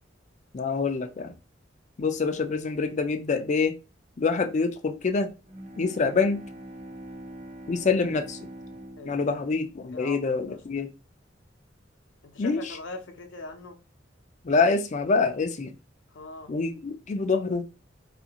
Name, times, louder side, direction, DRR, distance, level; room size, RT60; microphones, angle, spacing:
voice 1, 0.5-1.3 2.0-3.8 4.2-5.3 5.8-6.4 7.7-8.4 9.0-10.9 12.4-12.8 14.4-15.7 16.5-17.7, left 4 dB, 40° left, 0.4 m, -26 dB
Bowed string instrument, 5.4-10.5, right 1 dB, 35° right, 0.6 m, -44 dB
voice 2, 9.0-9.4 9.9-10.6 12.2-13.8 16.1-16.5, left 3 dB, 85° left, 0.6 m, -41 dB
2.7 x 2.5 x 2.8 m
head